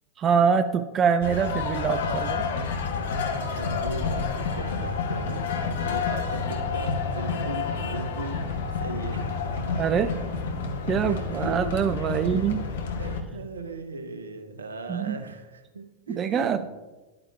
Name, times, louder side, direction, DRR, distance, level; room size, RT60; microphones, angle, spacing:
voice 1, 0.2-2.4 9.7-10.1 10.9-12.6 14.9-15.2 16.1-16.6, right 7 dB, 25° right, 10 dB, 0.3 m, -24 dB
sound 1, 1.2-13.2, left 4 dB, 60° left, 0.8 m, -29 dB
voice 2, 3.6-5.5 5.8-8.5 8.8-9.5 10.1-10.2 10.8-11.7 12.3-12.5 13.0-16.7, right 3 dB, 70° right, 7 dB, 0.8 m, -38 dB
10.5 x 8.7 x 2.3 m, 1.2 s
figure-of-eight pair, 90°, 0 cm